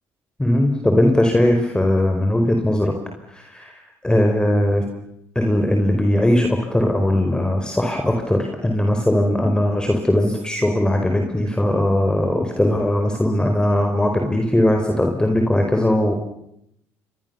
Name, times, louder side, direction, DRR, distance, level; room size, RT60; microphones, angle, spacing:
voice 1, 0.4-2.9 3.3-3.7 4.0-4.8 5.3-16.1, left 1 dB, 10° left, 3 dB, 5.1 m, -19 dB
29.0 x 24.5 x 7.2 m, 0.78 s
hypercardioid pair, 60°, 7 cm